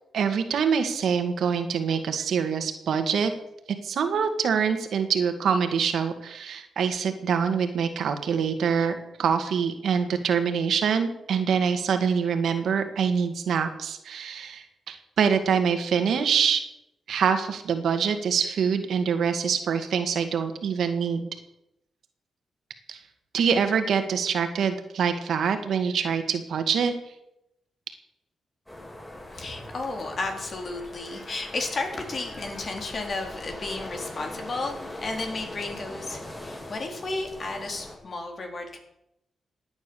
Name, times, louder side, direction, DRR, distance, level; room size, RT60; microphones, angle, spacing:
voice 1, 0.1-3.3 3.8-16.6 17.1-21.3 22.9-23.0 23.3-26.9, right 6 dB, 75° right, 8 dB, 1.9 m, -25 dB
sound 1, 28.7-38.0, left 1 dB, 15° left, 8.0 m, -41 dB
voice 2, 29.3-38.8, left 3 dB, 55° left, 3 dB, 3.8 m, -33 dB
16.0 x 9.5 x 7.0 m, 0.84 s
cardioid pair, 60°, 0 cm